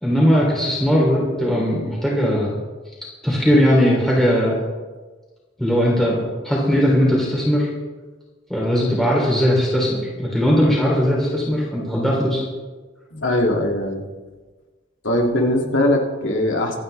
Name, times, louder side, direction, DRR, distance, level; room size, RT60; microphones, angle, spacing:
voice 1, 0.0-2.5 3.2-4.6 5.6-7.7 8.5-12.4, equal, ahead, -5 dB, 3.1 m, -19 dB
voice 2, 13.1-14.0 15.0-16.8, left 1 dB, 80° left, 1 dB, 2.3 m, -20 dB
25.5 x 9.4 x 3.3 m, 1.3 s
head